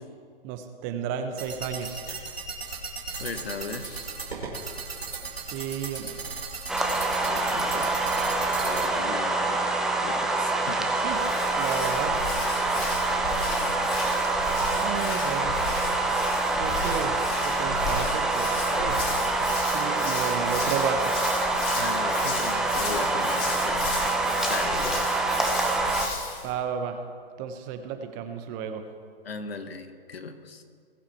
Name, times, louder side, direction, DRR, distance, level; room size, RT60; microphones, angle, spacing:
voice 1, 0.4-2.0 5.3-6.2 11.0-11.2 11.6-12.1 14.8-15.6 16.6-17.2 17.4-19.0 19.7-21.2 26.4-27.0 27.4-28.8, right 7 dB, 25° right, 7 dB, 0.9 m, -32 dB
sound 1, 1.4-8.9, right 4 dB, 90° right, 2.1 m, -36 dB
voice 2, 3.2-4.1 7.3-8.0 8.4-9.6 9.9-10.8 21.7-24.1 24.5-25.2 29.2-30.6, left 4 dB, 80° left, 8 dB, 1.4 m, -37 dB
sound 2, 6.7-26.1, right 2 dB, ahead, 0.6 m, -26 dB
Hands, 11.1-26.5, left 4 dB, 35° left, 3.2 m, -35 dB
20.0 x 7.7 x 4.3 m, 2.1 s
hypercardioid pair, 135°, 30 cm